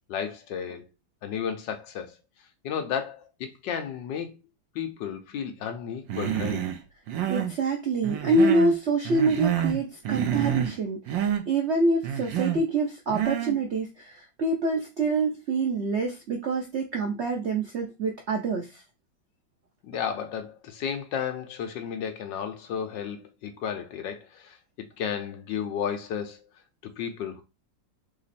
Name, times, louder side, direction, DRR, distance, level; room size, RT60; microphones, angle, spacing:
voice 1, 0.1-0.9 1.2-2.2 2.6-4.4 4.7-6.6 19.8-26.4 26.8-27.4, left 8 dB, 75° left, 1.4 m, -33 dB
Human voice, 6.1-6.8 7.1-7.6 8.0-8.8 9.1-9.8 10.1-10.8 11.1-11.4 12.0-12.6 13.1-13.6, right 9 dB, 80° right, 1.4 m, -28 dB
voice 2, 7.3-18.8, right 2 dB, 65° right, 0.6 m, -26 dB
3.5 x 3.1 x 4.1 m
omnidirectional pair, 2.0 m